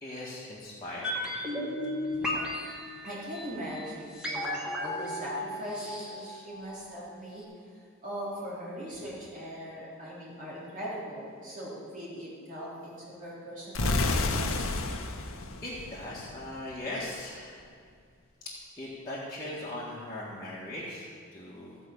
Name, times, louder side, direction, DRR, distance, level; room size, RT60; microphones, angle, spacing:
voice 1, 0.0-1.3 15.0-15.1 15.6-17.7 18.8-21.8, left 1 dB, 20° left, -8 dB, 1.8 m, -39 dB
sound 1, 1.0-7.1 7.4-7.5, left 1 dB, 5° right, 2.1 m, -35 dB
voice 2, 2.1-2.4 2.8-7.6 8.0-14.8, equal, 40° right, -7 dB, 3.8 m, -40 dB
sound 2, 13.7-16.6, left 2 dB, 70° left, 1.0 m, -30 dB
15.5 x 5.2 x 8.6 m, 2.2 s
head